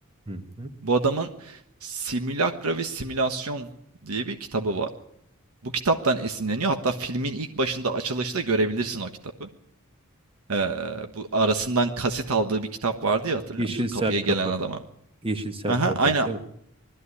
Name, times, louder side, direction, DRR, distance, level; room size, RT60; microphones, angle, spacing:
voice 1, 0.3-0.7 13.6-14.2 15.2-15.9 16.2-16.4, right 1 dB, 25° right, 8 dB, 1.6 m, -29 dB
voice 2, 0.8-3.7 4.0-4.9 5.6-9.1 9.4-9.5 10.5-13.6 13.9-14.8 15.7-16.3, right 3 dB, 85° right, 6 dB, 1.4 m, -26 dB
21.0 x 13.5 x 9.8 m, 0.73 s
head